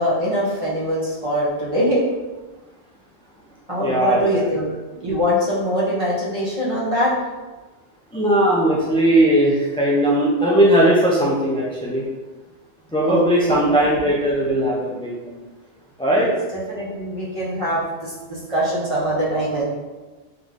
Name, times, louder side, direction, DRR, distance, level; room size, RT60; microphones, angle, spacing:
voice 1, 0.0-2.0 3.7-4.8 5.0-7.1 13.0-13.2 13.5-14.2 16.2-19.6, equal, 30° right, -7 dB, 1.2 m, -23 dB
voice 2, 3.8-4.5 8.1-12.0 12.9-15.3 16.0-16.3, right 1 dB, 10° left, -5 dB, 0.3 m, -18 dB
3.9 x 3.1 x 3.6 m, 1.2 s
omnidirectional pair, 1.2 m